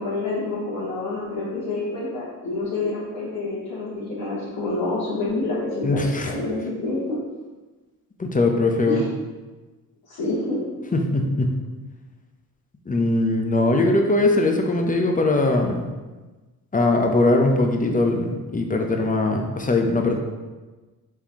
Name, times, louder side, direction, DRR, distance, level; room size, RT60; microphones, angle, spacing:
voice 1, 0.0-7.2 8.9-9.1 10.0-10.6, left 2 dB, 75° left, -11 dB, 1.4 m, -27 dB
voice 2, 5.8-6.3 8.2-9.0 10.9-11.5 12.9-15.8 16.7-20.2, left 2 dB, 20° left, 3 dB, 0.7 m, -21 dB
4.6 x 3.5 x 2.9 m, 1.2 s
cardioid pair, 60°, 38 cm